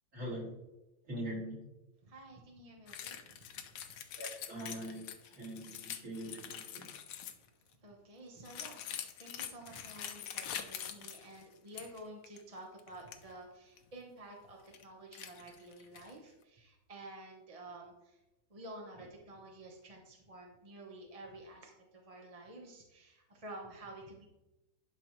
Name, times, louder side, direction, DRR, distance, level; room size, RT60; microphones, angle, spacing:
voice 1, 0.1-0.6 1.0-1.6 4.1-6.9, equal, 40° right, -5 dB, 3.3 m, -42 dB
voice 2, 2.0-3.9 7.3-7.4 7.8-18.2 18.5-24.2, right 1 dB, 25° right, 0 dB, 0.9 m, -51 dB
sound 1, 2.9-7.5 8.4-12.0 12.2-12.4 12.8-13.2 13.8-13.9 14.4-14.8 15.1-16.2, left 9 dB, 75° left, 1.3 m, -45 dB
11.5 x 5.4 x 3.1 m, 0.96 s
omnidirectional pair, 2.0 m